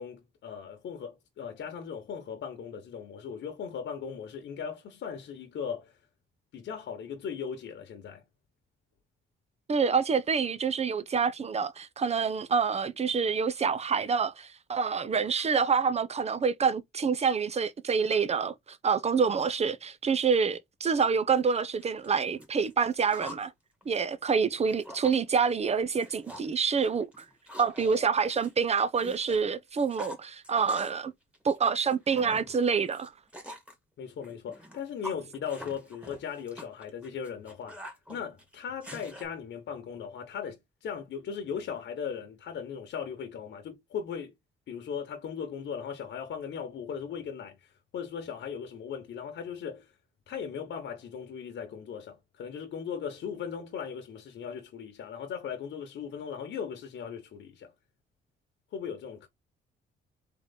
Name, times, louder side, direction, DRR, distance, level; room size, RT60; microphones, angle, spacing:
voice 1, 0.0-5.9 6.5-8.2 34.0-37.8 38.1-44.3 44.7-49.9 50.3-57.7 58.7-59.3, left 7 dB, 65° left, 1.2 m, -38 dB
voice 2, 9.7-23.5 23.9-27.2 27.6-31.1 31.4-33.1, right 5 dB, 35° right, 0.7 m, -27 dB
sound 1, 21.4-21.5 21.8-23.5 23.8-25.2 25.5-25.7 26.0-26.5 26.8-29.4 29.7-31.1 31.3-33.7 34.2-39.2, left 1 dB, 5° right, 1.9 m, -45 dB
3.9 x 3.1 x 4.0 m
cardioid pair, 90°, 20 cm